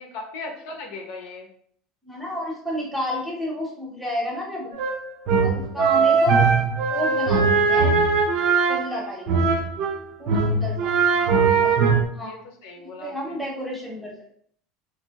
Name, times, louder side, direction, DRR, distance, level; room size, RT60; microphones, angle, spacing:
voice 1, 0.0-1.5 5.9-6.3 11.1-12.4 12.6-13.4, left 3 dB, 75° left, 2 dB, 0.7 m, -39 dB
voice 2, 2.0-4.7 5.4-6.5 6.9-8.0 8.7-9.3 10.2-11.0 11.6-11.8 12.1-12.3 12.8-14.3, left 1 dB, ahead, -3 dB, 0.8 m, -31 dB
sound 1, 4.7-9.9 10.3-12.0, right 5 dB, 50° right, 0.5 m, -20 dB
2.9 x 2.6 x 2.8 m, 0.62 s
supercardioid pair, 155°, 0 cm